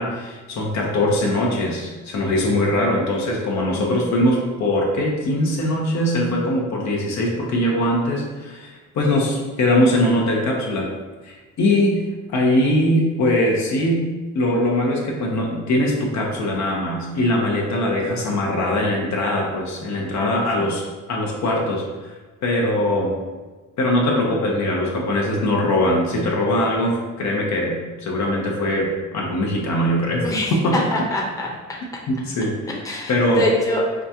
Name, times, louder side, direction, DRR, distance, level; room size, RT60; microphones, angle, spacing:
voice 1, 0.0-10.9 11.2-14.1 14.3-22.1 22.4-23.2 23.8-30.7 32.1-32.7 33.1-33.5, left 1 dB, 65° left, -2 dB, 0.9 m, -21 dB
voice 2, 30.2-31.5 32.8-34.0, left 1 dB, 10° left, -3 dB, 0.8 m, -24 dB
4.9 x 2.4 x 2.8 m, 1.3 s
cardioid pair, 90°, 30 cm